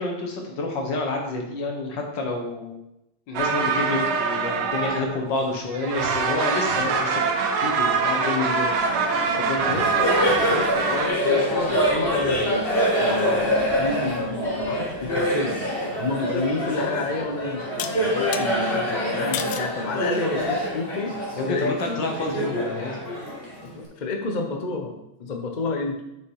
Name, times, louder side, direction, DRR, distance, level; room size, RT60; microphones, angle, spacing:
voice 1, 0.0-2.8 3.3-7.2 7.6-8.8 9.4-9.7 21.4-23.0, left 2 dB, 60° left, 2 dB, 1.9 m, -29 dB
sound 1, 3.3-5.5 5.7-11.1, right 5 dB, 80° right, 1.7 m, -24 dB
Laughter, 8.8-23.8, equal, 25° left, 2.2 m, -25 dB
voice 2, 9.7-10.1 10.5-12.7 13.0-15.6 16.0-21.1 21.5-22.1 23.7-26.0, left 3 dB, 45° left, 3 dB, 0.6 m, -30 dB
sound 2, 17.8-18.5 19.3-19.7 20.4-20.8, left 10 dB, 80° left, 1.5 m, -32 dB
6.8 x 6.5 x 4.7 m, 0.87 s
omnidirectional pair, 2.3 m